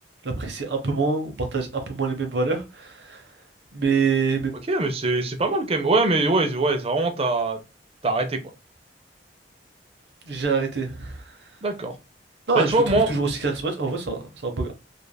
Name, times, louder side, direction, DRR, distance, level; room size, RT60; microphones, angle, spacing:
voice 1, 0.2-3.2 3.7-4.5 10.3-11.2 12.5-14.7, right 4 dB, 75° right, 0.8 m, -25 dB
voice 2, 4.7-7.6 8.0-8.4 11.6-11.9 12.5-13.1, right 2 dB, 35° right, 0.5 m, -22 dB
3.2 x 2.5 x 2.2 m
head